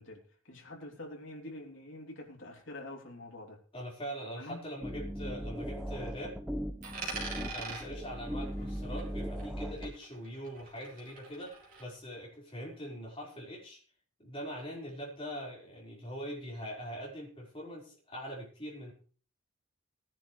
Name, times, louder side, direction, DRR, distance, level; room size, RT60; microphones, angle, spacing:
voice 1, 0.0-3.6 4.4-4.6 7.3-7.6, left 1 dB, 60° left, 1 dB, 3.1 m, -46 dB
voice 2, 3.7-6.4 7.5-13.8 14.2-18.9, equal, 25° left, -4 dB, 4.5 m, -42 dB
sound 1, 4.8-9.9, equal, 5° right, 0.9 m, -38 dB
Coin (dropping), 6.8-9.6 9.8-11.8, right 3 dB, 40° right, 3.7 m, -44 dB
18.0 x 10.5 x 3.2 m, 0.40 s
head